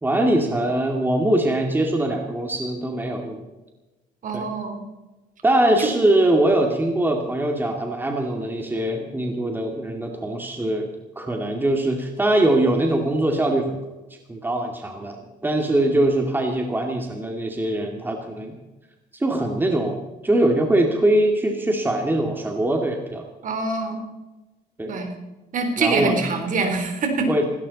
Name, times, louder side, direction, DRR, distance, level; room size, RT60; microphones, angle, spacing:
voice 1, 0.0-3.4 4.3-4.5 5.4-10.9 11.2-13.8 14.3-18.6 19.1-23.3 24.8-24.9 25.8-26.1 27.3-27.4, right 1 dB, 10° right, 2 dB, 2.4 m, -22 dB
voice 2, 4.2-4.8 5.8-5.9 23.4-24.0 24.9-25.1 25.5-27.3, right 3 dB, 50° right, 5 dB, 3.9 m, -24 dB
18.0 x 17.0 x 4.2 m, 1.1 s
cardioid pair, 110°, 17 cm